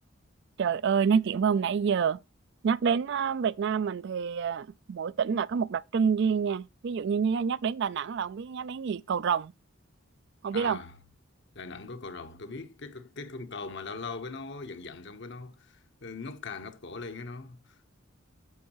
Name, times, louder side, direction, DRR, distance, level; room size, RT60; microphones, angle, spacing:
voice 1, 0.6-2.2 2.6-9.5 10.4-10.8, right 6 dB, 60° right, 0.4 m, -27 dB
voice 2, 10.5-11.0 11.5-17.8, left 4 dB, 60° left, 1.1 m, -40 dB
9.4 x 7.3 x 3.0 m
head